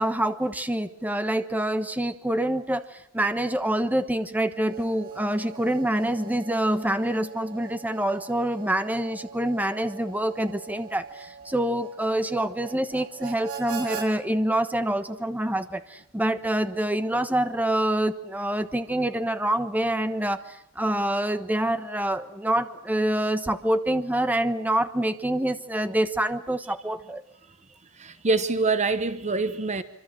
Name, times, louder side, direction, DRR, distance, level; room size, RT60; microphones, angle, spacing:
voice 1, 0.0-2.8 3.1-20.4 20.8-27.2, right 1 dB, 5° right, 10 dB, 1.3 m, -26 dB
Harmonica, 4.6-14.1, right 6 dB, 85° right, 5.3 m, -41 dB
voice 2, 28.0-29.8, right 3 dB, 30° right, 11 dB, 1.0 m, -25 dB
26.0 x 25.0 x 7.7 m, 0.73 s
head